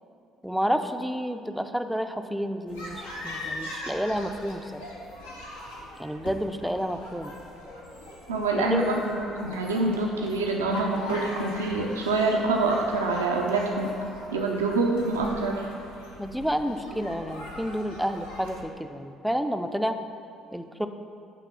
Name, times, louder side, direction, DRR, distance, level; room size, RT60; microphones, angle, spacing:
voice 1, 0.4-4.8 6.0-7.4 8.6-8.9 16.2-20.0 20.5-20.9, equal, ahead, 7 dB, 0.5 m, -30 dB
sound 1, 2.7-18.6, left 1 dB, 80° left, 1.0 m, -40 dB
voice 2, 8.3-14.0 14.3-15.6, right 3 dB, 80° right, 0 dB, 0.5 m, -26 dB
9.0 x 3.5 x 5.9 m, 2.5 s
figure-of-eight pair, 50°, 0 cm